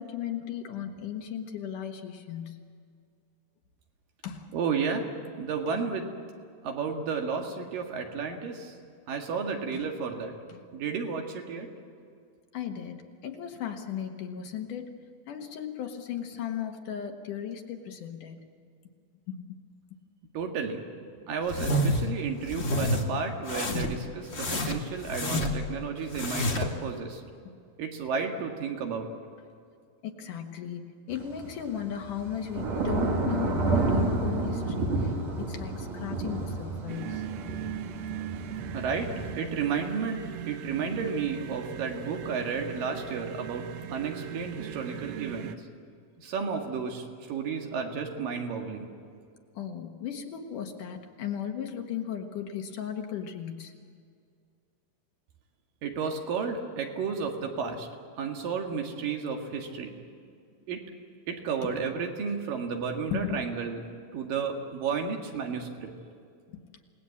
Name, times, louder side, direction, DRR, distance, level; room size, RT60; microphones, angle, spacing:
voice 1, 0.0-2.6 4.2-4.5 9.7-9.8 10.5-10.6 12.5-14.9 15.3-18.4 19.3-19.6 30.0-37.3 49.6-53.7 61.6-61.7 62.3-62.4 63.1-63.4 66.5-66.6, left 9 dB, 65° left, 4 dB, 2.7 m, -36 dB
voice 2, 4.5-5.1 5.4-6.1 6.6-8.7 9.1-10.3 10.7-11.7 20.3-20.8 21.3-27.2 27.8-29.1 38.7-39.1 39.4-45.5 46.2-48.9 55.8-57.9 58.2-59.9 60.7-60.8 61.3-63.8 64.1-65.9, right 5 dB, 70° right, 3 dB, 3.5 m, -32 dB
sound 1, 21.5-22.1 22.5-23.0 23.4-24.0 24.3-25.7 26.1-26.7, left 1 dB, 50° left, 0.7 m, -28 dB
Thunder / Rain, 31.1-39.3, right 2 dB, 50° right, 3.3 m, -30 dB
sound 2, 36.9-45.6, right 11 dB, 90° right, 2.9 m, -39 dB
28.0 x 19.0 x 8.5 m, 2.2 s
omnidirectional pair, 4.2 m